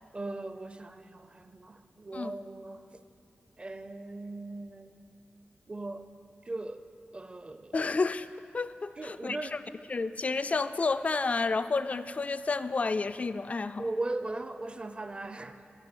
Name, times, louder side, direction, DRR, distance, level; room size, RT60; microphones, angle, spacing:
voice 1, 0.1-2.9 3.6-4.9 5.7-6.1 6.5-6.8 7.1-7.8 9.0-9.6 13.8-15.6, right 2 dB, 30° right, 10 dB, 0.6 m, -38 dB
voice 2, 7.7-8.3 8.5-9.6 9.9-13.9, left 4 dB, 35° left, 12 dB, 0.3 m, -30 dB
15.0 x 6.0 x 7.7 m, 2.7 s
wide cardioid pair, 95°, 4 cm